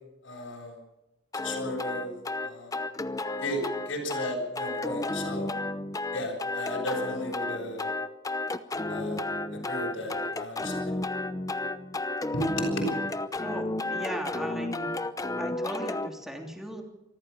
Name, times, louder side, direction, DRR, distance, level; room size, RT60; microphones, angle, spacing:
voice 1, 0.2-0.8 1.4-2.1 2.4-2.7 3.4-5.5 6.1-7.9 8.9-9.2 9.5-11.0 12.3-12.9, left 1 dB, 75° left, -2 dB, 7.8 m, -34 dB
sound 1, 1.3-16.1, left 2 dB, 15° left, 0.8 m, -32 dB
voice 2, 13.4-14.9 15.4-16.8, equal, ahead, 2 dB, 3.0 m, -37 dB
25.5 x 14.0 x 7.1 m, 0.97 s
head